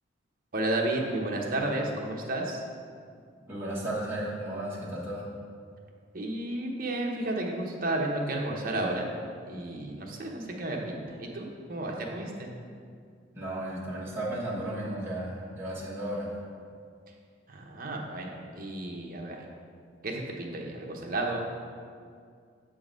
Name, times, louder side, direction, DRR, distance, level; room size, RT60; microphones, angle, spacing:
voice 1, 0.5-2.6 6.1-9.0 9.4-12.5 17.5-19.4 20.0-21.5, right 2 dB, 45° right, 0 dB, 0.8 m, -32 dB
voice 2, 3.5-5.3 13.4-16.3, right 1 dB, 10° right, -7 dB, 1.1 m, -34 dB
7.3 x 3.8 x 5.0 m, 2.2 s
head